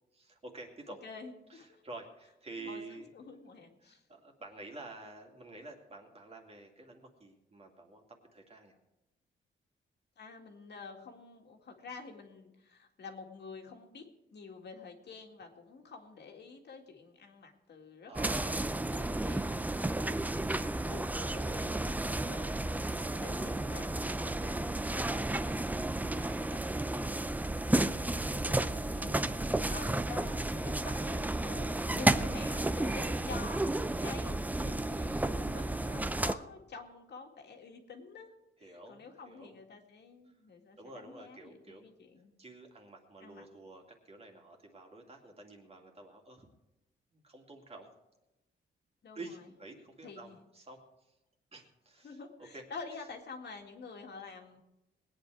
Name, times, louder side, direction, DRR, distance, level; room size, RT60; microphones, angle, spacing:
voice 1, 0.1-1.0 1.5-3.1 3.5-8.8 18.1-18.9 23.1-23.7 24.2-25.6 26.7-27.1 28.2-28.7 32.9-33.3 38.6-39.5 40.8-41.8 42.4-46.5 47.1-47.9 49.1-50.8 51.1-51.2 51.5-52.2 52.5-52.6 53.0-53.1, right 2 dB, 30° right, 1 dB, 2.6 m, -50 dB
voice 2, 0.9-1.8 2.6-4.0 10.2-14.0 14.3-20.6 20.9-22.6 23.0-26.6 27.0-38.3 38.6-42.3 43.2-43.4 49.0-49.5 50.0-50.4 52.0-54.6, left 4 dB, 60° left, 2 dB, 2.2 m, -49 dB
sound 1, 18.1-36.3, right 2 dB, 10° right, 0.5 m, -32 dB
20.5 x 9.4 x 4.8 m, 0.96 s
cardioid pair, 125°, 19 cm